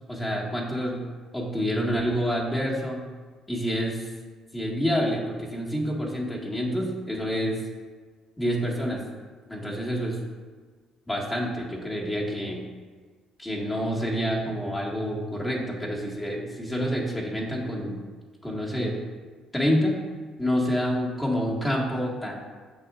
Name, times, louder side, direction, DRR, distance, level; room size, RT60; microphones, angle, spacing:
voice 1, 0.1-3.0 3.5-4.1 4.5-7.6 8.4-9.0 9.5-10.1 11.1-12.6 13.4-18.0 18.4-18.9 19.5-20.0 20.4-22.3, equal, 15° left, -3 dB, 1.8 m, -28 dB
8.4 x 6.0 x 2.5 m, 1.5 s
supercardioid pair, 75°, 0 cm